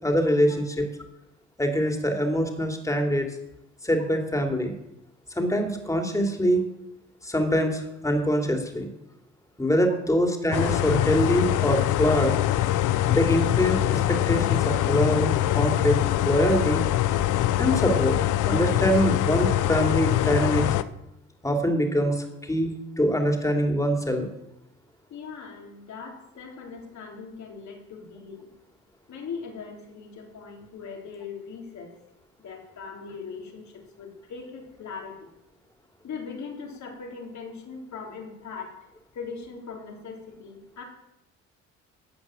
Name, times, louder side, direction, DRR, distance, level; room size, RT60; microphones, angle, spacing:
voice 1, 0.0-0.9 1.6-3.3 3.8-4.7 5.4-6.6 7.2-8.9 9.6-12.4 13.1-16.8 17.6-18.2 18.4-20.7 21.4-24.3, equal, 10° left, 4 dB, 3.0 m, -24 dB
sound 1, 10.5-20.8, left 14 dB, 85° left, 0.7 m, -23 dB
voice 2, 25.1-28.5 29.1-31.9 32.4-35.3 36.0-38.7 39.1-40.8, left 5 dB, 65° left, 1 dB, 3.8 m, -40 dB
14.0 x 8.5 x 7.8 m, 0.86 s
cardioid pair, 90°, 30 cm